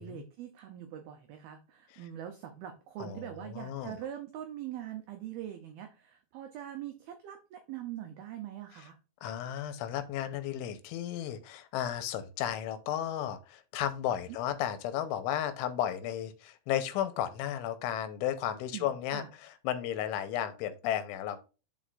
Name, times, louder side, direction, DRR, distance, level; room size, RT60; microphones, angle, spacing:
voice 1, 0.0-9.0 18.7-19.3, right 11 dB, 90° right, 5 dB, 2.1 m, -43 dB
voice 2, 3.0-4.0 8.8-8.9 9.2-21.4, left 11 dB, 85° left, 10 dB, 3.2 m, -34 dB
12.0 x 4.5 x 2.5 m, 0.32 s
omnidirectional pair, 5.5 m